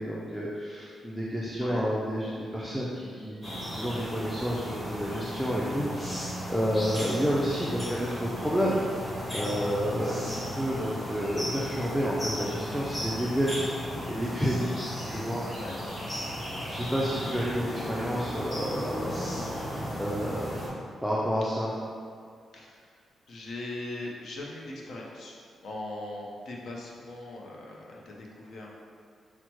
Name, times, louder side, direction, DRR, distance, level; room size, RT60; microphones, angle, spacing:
voice 1, 0.0-13.7 14.1-14.8 15.1-15.5 16.6-20.6 21.0-21.7, equal, ahead, -6 dB, 0.4 m, -30 dB
voice 2, 1.6-1.9 15.5-15.8 22.5-23.0 23.3-25.4 25.6-28.7, left 2 dB, 65° left, -2 dB, 0.7 m, -40 dB
sound 1, 3.4-20.7, equal, 25° left, 1.4 m, -35 dB
5.7 x 2.1 x 3.0 m, 2.2 s
cardioid pair, 105°, 0 cm